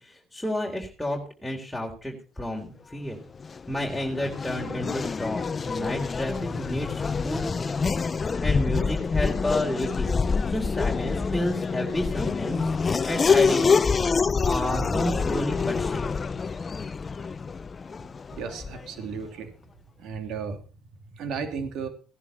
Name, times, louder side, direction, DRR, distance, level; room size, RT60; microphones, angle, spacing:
voice 1, 0.0-3.2 3.7-10.1 10.5-12.7 13.1-13.8 14.4-16.0, left 1 dB, 5° left, -1 dB, 3.9 m, -31 dB
Race car auto racing / Accelerating revving vroom, 3.3-19.0, left 5 dB, 30° left, 0.7 m, -26 dB
voice 2, 18.3-19.5 20.0-20.6 21.1-21.9, right 5 dB, 65° right, 7 dB, 2.8 m, -34 dB
17.5 x 11.0 x 4.4 m, 0.35 s
supercardioid pair, 75°, 0 cm